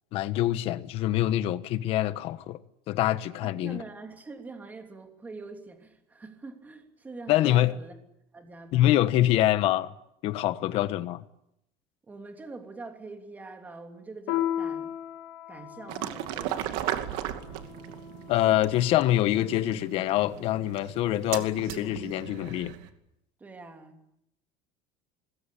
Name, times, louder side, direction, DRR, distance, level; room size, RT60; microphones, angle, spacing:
voice 1, 0.1-2.6 2.9-3.8 7.3-7.8 8.7-9.9 10.2-11.2 18.3-22.7, left 14 dB, 45° left, 1.2 m, -25 dB
voice 2, 3.4-8.0 8.3-9.0 12.0-15.0 15.5-16.9 23.4-24.0, right 3 dB, 10° right, 3.1 m, -44 dB
Piano, 14.3-19.2, left 11 dB, 70° left, 5.0 m, -36 dB
sound 1, 15.9-22.9, right 12 dB, 65° right, 2.4 m, -37 dB
25.5 x 21.0 x 8.6 m
cardioid pair, 170°, 13 cm